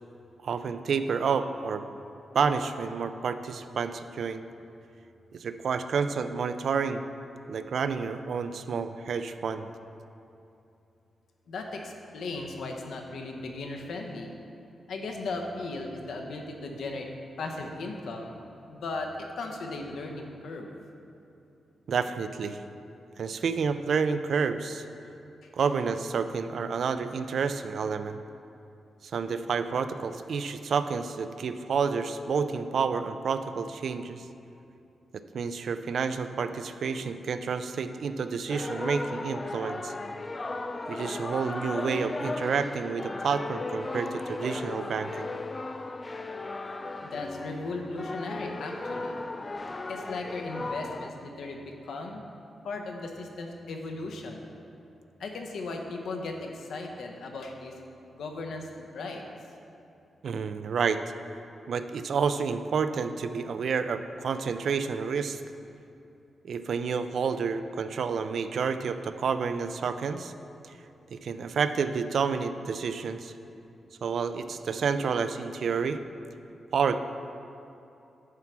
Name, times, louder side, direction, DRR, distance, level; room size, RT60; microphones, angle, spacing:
voice 1, 0.4-1.8 2.3-4.4 5.3-7.0 7.5-9.7 21.9-22.6 23.2-24.9 25.5-28.2 29.0-34.2 35.3-39.9 40.9-45.3 60.2-61.0 61.7-65.4 66.4-70.3 71.1-73.3 74.0-76.0 76.7-77.0, right 5 dB, 60° right, 10 dB, 0.4 m, -29 dB
voice 2, 11.5-14.3 14.9-17.1 17.4-18.4 18.7-20.7 47.0-49.1 49.9-52.2 52.6-54.5 55.2-57.7 58.1-59.2, left 3 dB, 75° left, 2 dB, 0.9 m, -37 dB
sound 1, 38.5-51.1, left 2 dB, 20° left, 0.3 m, -36 dB
9.5 x 4.6 x 6.1 m, 2.8 s
wide cardioid pair, 155°, 0 cm